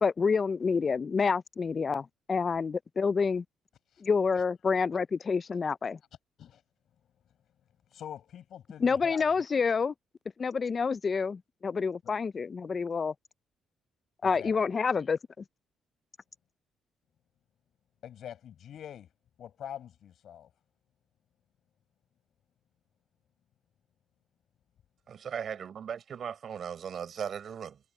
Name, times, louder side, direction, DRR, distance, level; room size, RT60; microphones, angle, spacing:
voice 1, 0.0-3.4 4.0-6.0 8.8-9.9 10.4-13.1 14.2-15.4, left 5 dB, 40° left, 0.4 m, -28 dB
voice 2, 7.9-9.2 14.2-14.5 18.0-19.1 19.4-20.5, left 10 dB, 70° left, 6.3 m, -44 dB
voice 3, 25.1-27.8, right 7 dB, 55° right, 4.6 m, -37 dB
cardioid pair, 90°, 0 cm